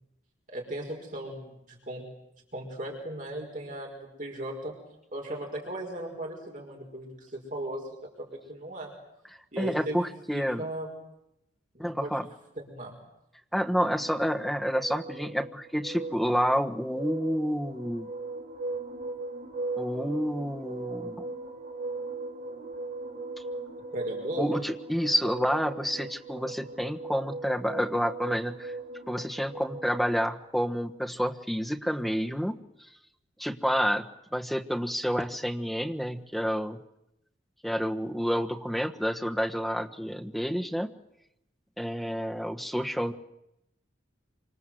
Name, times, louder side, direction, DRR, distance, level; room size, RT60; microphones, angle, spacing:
voice 1, 0.5-2.0 2.5-4.7 5.1-8.9 9.5-10.0 10.3-10.9 11.7-12.2 12.6-12.9 23.9-24.5, right 1 dB, 45° right, 0 dB, 5.6 m, -37 dB
voice 2, 9.6-10.6 11.8-12.3 13.5-18.1 19.8-21.3 24.4-28.7 29.1-32.6 33.4-34.1 34.3-36.8 37.6-40.9 41.8-43.1, equal, ahead, 3 dB, 1.4 m, -29 dB
sound 1, 13.8-30.3, right 2 dB, 60° right, 5.4 m, -38 dB
27.0 x 26.0 x 7.9 m, 0.83 s
head